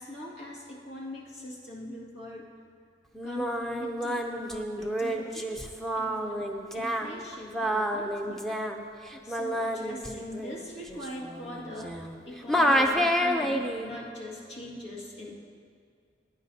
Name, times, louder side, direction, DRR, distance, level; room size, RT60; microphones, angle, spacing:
voice 1, 0.0-2.4 3.2-5.5 5.9-6.5 6.7-8.6 9.2-15.3, left 1 dB, 80° left, -4 dB, 2.1 m, -41 dB
Singing, 3.1-12.2 12.5-13.9, equal, ahead, 0.5 m, -29 dB
16.0 x 9.2 x 2.8 m, 2.3 s
head